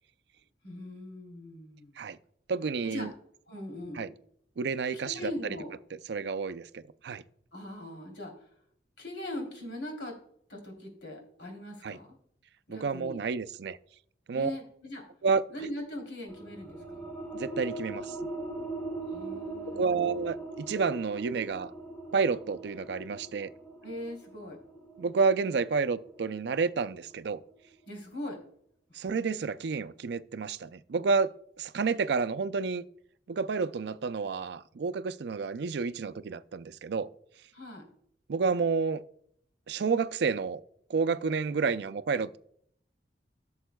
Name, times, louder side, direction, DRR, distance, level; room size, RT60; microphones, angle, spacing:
voice 1, 0.6-2.0 2.8-3.1 3.5-4.1 5.0-5.7 7.5-8.5 9.0-10.2 10.5-12.2 12.7-13.2 14.3-15.1 15.5-17.1 19.1-20.2 23.8-24.6 27.9-28.4 28.9-29.0 37.5-37.9, left 1 dB, 85° left, 3.2 m, -40 dB
voice 2, 2.5-3.1 4.0-4.1 4.6-5.2 6.1-7.2 11.8-12.0 12.7-13.8 14.3-14.5 15.2-15.4 17.3-18.3 19.7-21.7 22.1-23.5 25.0-27.4 28.9-32.8 33.3-37.1 38.3-39.0 39.7-40.6 40.9-42.4, right 5 dB, 65° right, 0.4 m, -30 dB
sound 1, 16.3-27.5, right 2 dB, 10° left, 1.4 m, -41 dB
16.0 x 7.1 x 2.3 m
head